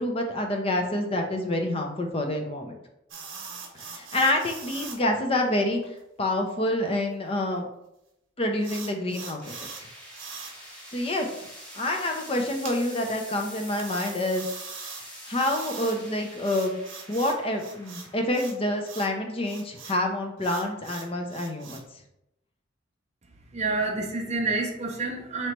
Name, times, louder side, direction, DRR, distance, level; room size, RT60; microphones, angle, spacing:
voice 1, 0.0-2.7 3.7-7.7 8.4-9.4 10.9-11.3 11.7-14.4 15.3-16.8 17.1-21.8, left 1 dB, 30° left, 3 dB, 0.6 m, -27 dB
sound 1, 3.1-5.0 5.4-5.5 5.8-6.0 6.5-6.6 8.6-9.8 10.1-10.5 12.6-12.8 13.8-15.0 15.3-16.0 16.4-18.5 18.8-19.1 19.4-20.0 20.4-21.8, right 5 dB, 85° right, 0.8 m, -41 dB
sound 2, 9.4-20.5, equal, 5° left, 1.0 m, -46 dB
voice 2, 23.5-25.5, right 3 dB, 35° right, 1 dB, 0.7 m, -28 dB
3.2 x 2.9 x 4.4 m, 0.84 s
head